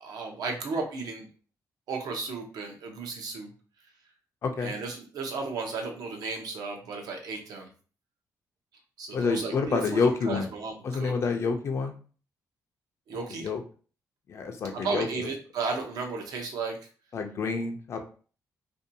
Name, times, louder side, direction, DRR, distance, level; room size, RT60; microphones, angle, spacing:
voice 1, 0.0-1.3 1.9-3.5 4.6-7.7 9.0-10.0 10.3-11.1 13.1-13.5 14.8-16.8, right 4 dB, 70° right, 2 dB, 0.6 m, -34 dB
voice 2, 4.4-4.7 9.1-10.5 10.8-11.9 13.3-13.6 14.3-15.3 17.1-18.1, left 4 dB, 45° left, 4 dB, 0.4 m, -28 dB
2.6 x 2.2 x 2.6 m, 0.40 s
cardioid pair, 145°, 7 cm